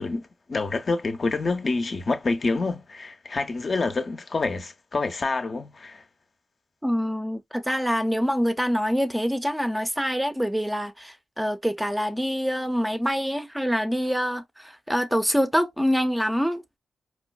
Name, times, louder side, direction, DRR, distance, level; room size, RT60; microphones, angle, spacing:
voice 1, 0.0-6.0, left 3 dB, 55° left, 0.5 m, -27 dB
voice 2, 6.8-16.8, equal, 5° right, 0.4 m, -25 dB
4.4 x 2.0 x 2.2 m
supercardioid pair, 45°, 0 cm